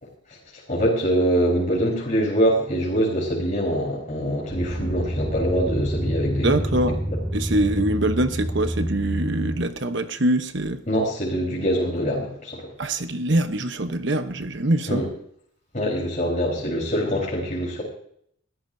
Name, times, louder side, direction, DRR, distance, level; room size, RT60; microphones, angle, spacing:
voice 1, 0.7-6.9 10.9-12.6 14.9-15.1 15.7-17.8, equal, 35° left, -3 dB, 4.2 m, -24 dB
sound 1, 4.5-9.6, equal, 15° right, 3.6 m, -28 dB
voice 2, 6.4-7.0 7.3-10.8 12.8-15.0, right 1 dB, 60° right, 8 dB, 1.0 m, -24 dB
20.5 x 14.0 x 2.7 m, 0.66 s
head